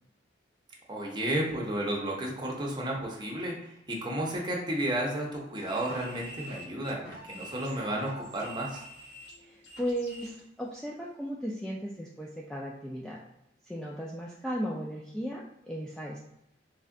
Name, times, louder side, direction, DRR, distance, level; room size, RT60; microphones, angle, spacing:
voice 1, 0.9-8.8, right 1 dB, 25° right, -2 dB, 0.8 m, -32 dB
sound 1, 5.5-10.4, right 1 dB, 60° left, 1.3 m, -46 dB
voice 2, 9.4-13.2 13.7-16.2, equal, 5° left, -4 dB, 0.3 m, -36 dB
3.2 x 2.4 x 3.6 m, 0.82 s
head